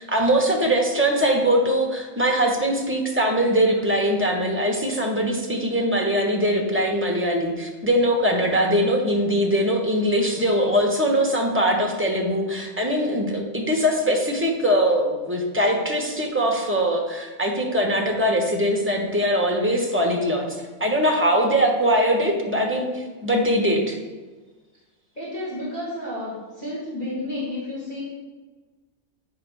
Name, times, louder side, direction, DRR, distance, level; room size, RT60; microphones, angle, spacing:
voice 1, 0.0-24.0, equal, 10° right, 1 dB, 1.1 m, -22 dB
voice 2, 25.2-28.0, left 1 dB, 30° left, -8 dB, 2.7 m, -31 dB
8.4 x 3.8 x 6.4 m, 1.3 s
omnidirectional pair, 1.4 m